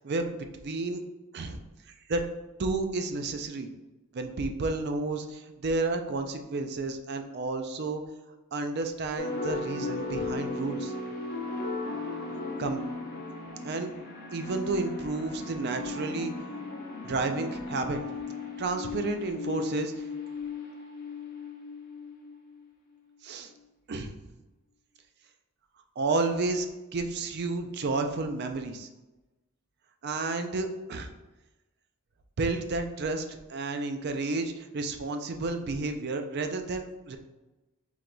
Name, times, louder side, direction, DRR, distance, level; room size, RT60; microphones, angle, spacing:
voice 1, 0.0-1.0 1.3-1.6 2.1-2.3 2.6-3.7 4.1-8.0 8.5-10.9 12.6-12.8 13.6-13.9 14.3-16.3 17.0-18.0 18.6-20.0 23.2-23.5 23.9-24.1 26.0-26.7 26.9-28.9 30.0-31.1 32.4-37.2, right 3 dB, 45° right, 6 dB, 0.4 m, -31 dB
sound 1, 9.2-22.5, left 3 dB, 40° left, 0.7 m, -36 dB
4.6 x 3.8 x 2.2 m, 1.1 s
head